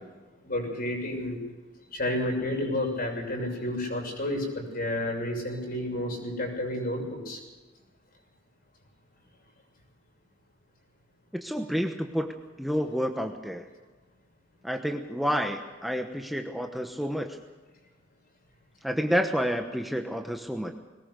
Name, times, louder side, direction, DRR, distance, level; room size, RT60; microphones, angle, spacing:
voice 1, 0.4-1.4 1.9-7.4, left 1 dB, 50° left, 1 dB, 6.9 m, -30 dB
voice 2, 11.3-12.3 12.6-13.7 14.6-17.4 18.8-20.7, equal, ahead, 4 dB, 1.1 m, -29 dB
21.5 x 19.5 x 6.7 m, 1.2 s
head